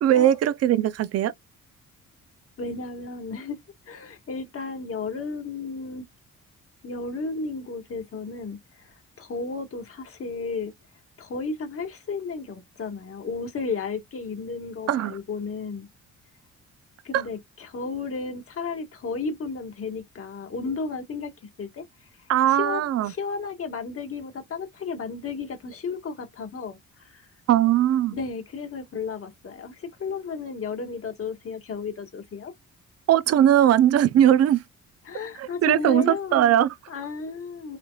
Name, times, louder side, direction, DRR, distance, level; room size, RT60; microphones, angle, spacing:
voice 1, 0.0-1.3 14.9-15.1 17.1-17.2 22.3-23.1 27.5-28.2 33.1-34.6 35.4-36.7, right 11 dB, 55° right, 0.5 m, -20 dB
voice 2, 2.6-3.6 3.9-6.0 6.8-10.7 11.2-15.9 17.0-21.3 21.6-21.8 22.5-26.8 27.0-27.3 28.1-32.5 35.1-36.6 36.9-37.8, left 4 dB, 50° left, 1.8 m, -33 dB
4.9 x 2.9 x 2.3 m
cardioid pair, 90°, 30 cm